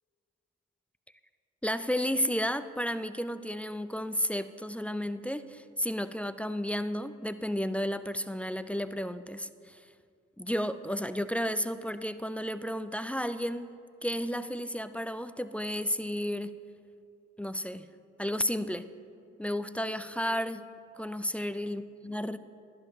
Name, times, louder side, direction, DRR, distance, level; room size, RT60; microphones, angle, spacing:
voice 1, 1.6-9.8 10.4-13.7 14.0-16.5 17.4-17.9 18.2-18.9 19.4-20.6 21.0-22.4, equal, 5° left, 12 dB, 0.3 m, -32 dB
12.5 x 10.5 x 3.1 m, 2.4 s
supercardioid pair, 60°, 30 cm